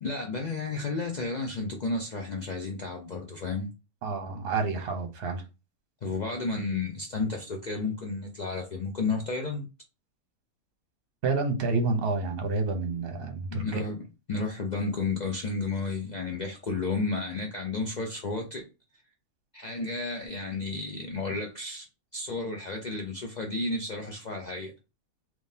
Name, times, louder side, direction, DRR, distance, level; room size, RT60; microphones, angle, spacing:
voice 1, 0.0-3.7 6.0-9.7 13.5-18.7 19.5-21.9 22.1-24.7, left 3 dB, 75° left, 0.4 m, -32 dB
voice 2, 4.0-5.4 11.2-13.8, right 3 dB, 45° right, 0.9 m, -29 dB
3.6 x 3.0 x 2.7 m
omnidirectional pair, 1.6 m